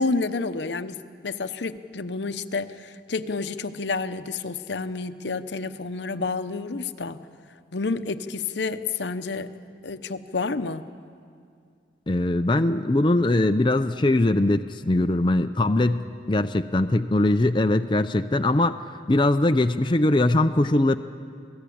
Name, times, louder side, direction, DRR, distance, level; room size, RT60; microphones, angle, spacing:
voice 1, 0.0-7.2 7.7-9.5 9.8-10.9, left 4 dB, 70° left, 11 dB, 0.8 m, -29 dB
voice 2, 12.1-18.8 19.1-21.0, left 2 dB, 25° left, 8 dB, 0.5 m, -21 dB
27.5 x 18.0 x 8.6 m, 2.3 s
head